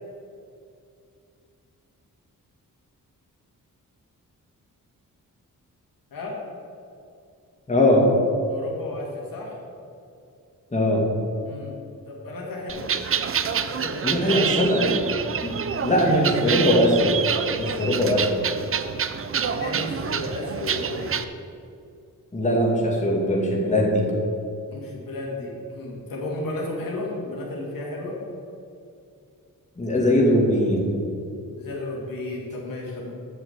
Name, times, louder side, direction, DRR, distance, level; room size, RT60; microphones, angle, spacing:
voice 1, 7.7-8.0 10.7-11.0 14.0-15.0 15.4-15.6 15.8-17.1 17.6-18.3 22.3-24.0 29.8-30.8, equal, 20° left, -2 dB, 2.1 m, -20 dB
voice 2, 8.5-9.6 11.4-11.7 12.0-12.9 13.5-14.4 17.7-18.0 19.4-21.2 24.7-28.2 31.5-33.1, left 2 dB, 85° left, -3 dB, 2.5 m, -33 dB
sound 1, 12.7-21.2, right 7 dB, 40° right, 0.5 m, -27 dB
8.0 x 6.2 x 8.1 m, 2.5 s
wide cardioid pair, 115°, 33 cm